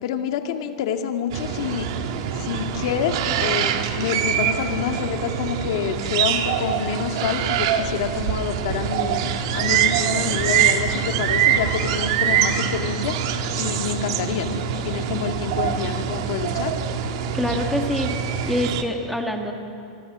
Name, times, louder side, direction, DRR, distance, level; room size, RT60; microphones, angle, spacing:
voice 1, 0.0-1.9 2.4-9.2 9.5-16.7, left 8 dB, 60° left, 5 dB, 2.0 m, -27 dB
sound 1, 1.3-18.8, right 8 dB, 55° right, 1.8 m, -24 dB
voice 2, 17.3-18.1 18.5-19.5, left 1 dB, ahead, 2 dB, 1.6 m, -25 dB
25.5 x 23.5 x 6.2 m, 2.6 s
supercardioid pair, 155°, 3 cm